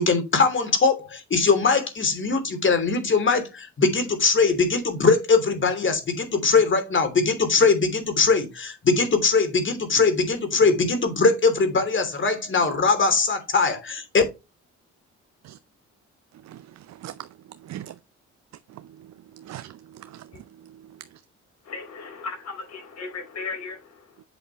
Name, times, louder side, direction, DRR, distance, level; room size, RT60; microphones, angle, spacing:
voice 1, 0.0-14.2, left 4 dB, 40° left, 3.1 m, -21 dB
voice 2, 16.4-17.3 17.6-18.0 18.7-20.3 20.6-20.8, right 12 dB, 60° right, 0.6 m, -41 dB
voice 3, 21.6-24.2, left 4 dB, 60° left, 4.4 m, -36 dB
8.1 x 5.9 x 3.0 m
cardioid pair, 90°, 30 cm